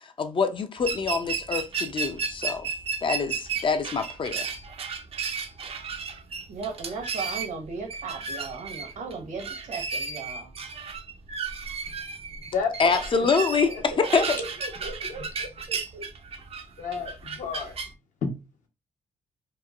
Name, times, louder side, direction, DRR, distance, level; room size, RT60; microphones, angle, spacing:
voice 1, 0.2-2.7 3.0-4.5 12.8-14.4, left 5 dB, 40° left, 0.4 m, -25 dB
sound 1, 0.8-17.9, right 5 dB, 45° right, 0.4 m, -34 dB
voice 2, 6.5-10.5 14.1-16.0, right 4 dB, 65° right, 0.8 m, -37 dB
voice 3, 12.5-13.1 13.4-13.7 15.2-15.5 16.8-17.7 18.2-18.3, left 5 dB, 70° left, 0.9 m, -31 dB
2.9 x 2.1 x 2.3 m
cardioid pair, 75°, 14 cm